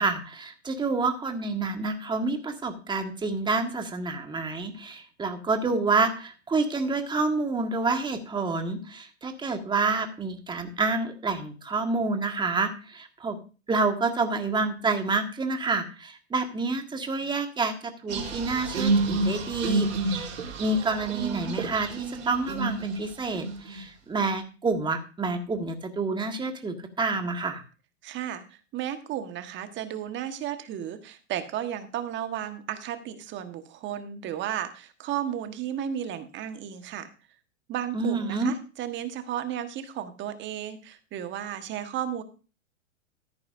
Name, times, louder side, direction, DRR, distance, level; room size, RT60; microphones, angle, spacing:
voice 1, 0.0-13.4 13.7-20.3 20.6-27.6 37.9-38.5, right 3 dB, 10° right, 6 dB, 1.7 m, -28 dB
sound 1, 18.1-22.9 23.3-23.8, right 3 dB, 80° right, 3.9 m, -29 dB
voice 2, 28.0-37.1 37.7-42.2, right 10 dB, 30° right, 8 dB, 1.4 m, -34 dB
14.0 x 10.5 x 2.6 m, 0.34 s
hypercardioid pair, 110°, 38 cm